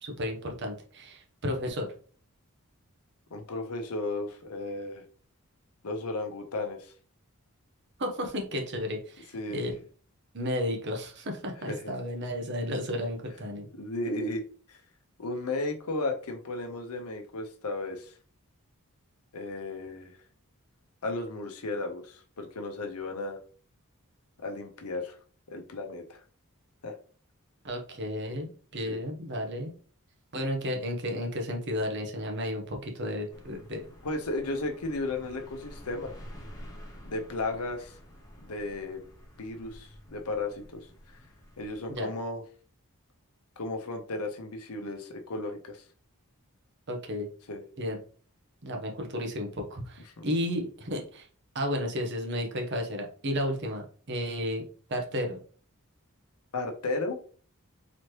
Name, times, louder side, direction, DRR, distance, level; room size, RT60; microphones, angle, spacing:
voice 1, 0.0-1.9 8.0-9.7 10.3-13.7 27.6-29.7 30.3-33.8 41.9-42.1 46.9-47.3 47.8-48.0 48.6-51.3 51.5-54.6 54.9-55.4, equal, 50° right, 2 dB, 0.9 m, -33 dB
voice 2, 3.3-5.0 5.8-6.9 9.3-9.6 11.6-11.9 13.7-14.4 14.7-14.8 15.2-18.1 19.3-20.2 21.0-23.4 24.4-25.2 25.5-26.2 26.8-26.9 28.9-29.0 34.0-36.1 37.0-38.0 38.4-39.0 39.4-40.9 41.6-42.4 43.6-45.8 47.5-47.6 50.2-50.3 56.5-57.2, left 2 dB, 85° left, 4 dB, 0.8 m, -34 dB
sound 1, 33.3-42.0, equal, 15° left, 0.9 m, -49 dB
4.1 x 2.9 x 3.2 m, 0.42 s
head